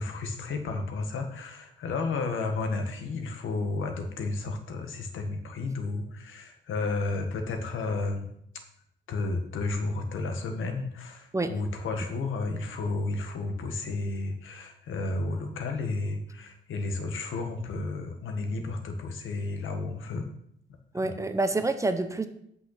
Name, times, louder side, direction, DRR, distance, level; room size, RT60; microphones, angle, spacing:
voice 1, 0.0-8.3 9.1-20.3 21.0-21.2, left 3 dB, 90° left, 6 dB, 1.6 m, -32 dB
voice 2, 20.9-22.3, right 2 dB, 15° right, 8 dB, 0.7 m, -27 dB
8.7 x 5.7 x 6.5 m, 0.71 s
wide cardioid pair, 150°, 20 cm